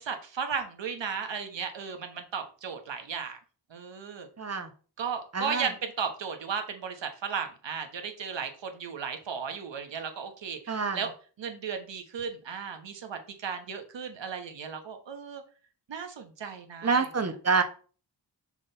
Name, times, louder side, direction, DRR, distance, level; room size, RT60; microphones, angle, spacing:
voice 1, 0.0-3.4 3.7-4.3 5.0-11.1 11.4-15.4 15.9-17.1, right 6 dB, 85° right, 6 dB, 1.2 m, -35 dB
voice 2, 4.4-4.7 5.3-5.7 10.7-11.0 16.8-17.6, right 5 dB, 35° right, 8 dB, 0.9 m, -27 dB
6.0 x 4.0 x 4.0 m, 0.39 s
wide cardioid pair, 95°, 43 cm